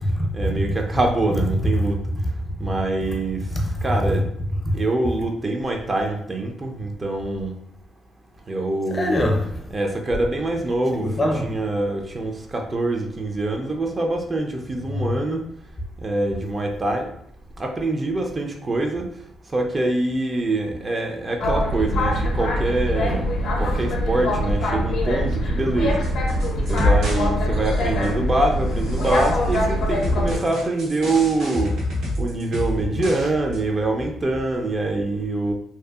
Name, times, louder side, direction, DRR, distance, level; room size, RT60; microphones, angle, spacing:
voice 1, 0.3-2.0 2.6-3.5 3.8-4.3 4.7-7.5 8.5-9.2 9.7-11.1 11.4-15.5 16.0-17.1 17.6-19.1 19.5-23.3 23.6-26.0 26.7-31.7 32.2-35.5, right 2 dB, 30° right, 0.4 m, -24 dB
voice 2, 3.5-3.8 4.6-4.8 8.9-9.7 10.9-11.6 14.9-15.1, left 1 dB, 30° left, 0.5 m, -24 dB
Boat Water vehicle, 21.4-30.4, equal, 75° left, 0.5 m, -23 dB
sound 1, 26.0-27.3 27.5-28.2 28.8-29.6 30.0-33.3 33.5-33.6, left 1 dB, 85° right, 0.9 m, -27 dB
2.6 x 2.3 x 2.3 m
cardioid pair, 90°, 0 cm